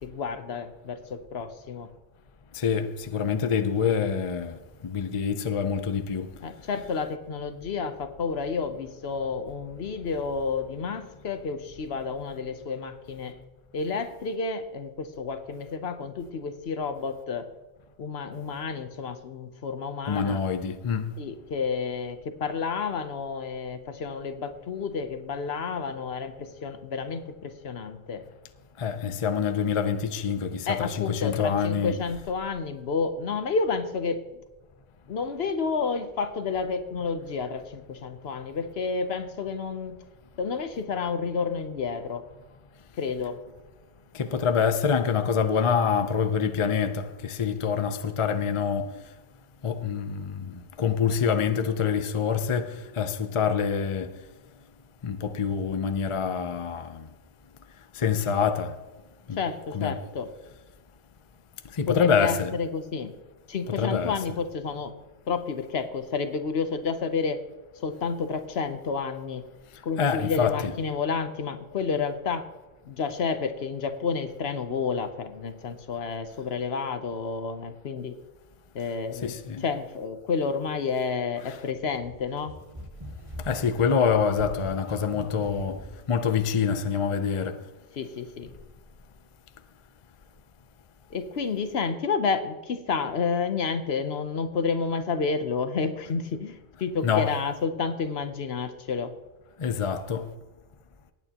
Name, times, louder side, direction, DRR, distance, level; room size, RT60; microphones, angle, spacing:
voice 1, 0.0-1.9 6.4-13.4 13.7-17.5 18.0-20.4 21.2-28.2 30.7-34.2 35.1-40.0 40.4-42.2 43.0-43.4 59.3-60.3 61.9-63.1 63.5-64.9 65.3-67.4 67.8-69.4 69.8-72.5 72.8-78.2 78.7-82.5 88.0-88.5 91.1-99.1, left 5 dB, 65° left, 1.0 m, -30 dB
voice 2, 2.5-6.3 20.1-21.1 28.8-32.0 44.1-48.9 49.6-54.1 55.0-57.1 57.9-58.8 59.3-59.4 59.7-60.0 61.7-62.5 63.8-64.1 70.0-70.7 79.2-79.6 81.5-81.6 83.4-85.8 86.1-87.6 97.0-97.3 99.6-100.3, left 6 dB, 35° left, 0.6 m, -26 dB
sound 1, 81.7-86.0, equal, 30° right, 2.3 m, -42 dB
19.0 x 9.1 x 2.9 m
omnidirectional pair, 1.2 m